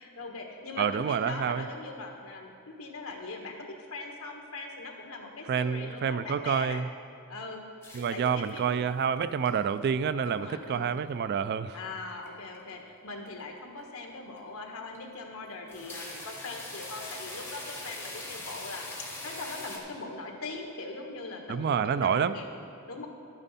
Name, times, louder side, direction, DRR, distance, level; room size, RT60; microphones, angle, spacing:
voice 1, 0.0-6.8 7.3-7.6 8.1-8.9 10.2-11.0 11.7-23.1, left 3 dB, 75° left, 2 dB, 1.3 m, -41 dB
voice 2, 0.8-1.7 5.5-6.9 7.9-11.8 21.5-22.3, right 7 dB, 50° right, 13 dB, 0.3 m, -28 dB
sound 1, 7.8-8.7 9.0-9.5 9.9-10.5 10.9-11.0 11.8-12.3 12.5-12.8 13.3-13.4 13.8-13.9 14.4-14.5 15.0-15.2 15.5-19.8, left 2 dB, 10° left, 1.3 m, -41 dB
11.5 x 8.8 x 4.2 m, 2.5 s
head